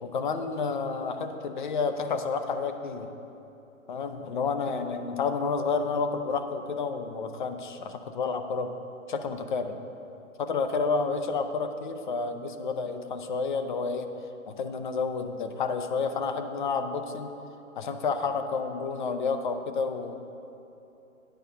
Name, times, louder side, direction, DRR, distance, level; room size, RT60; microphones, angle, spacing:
voice 1, 0.0-3.1 3.9-8.7 9.1-9.8 10.4-14.1 14.5-17.3 17.8-20.2, left 4 dB, 35° left, 8 dB, 0.5 m, -30 dB
9.1 x 5.3 x 6.9 m, 2.9 s
figure-of-eight pair, 130°, 42 cm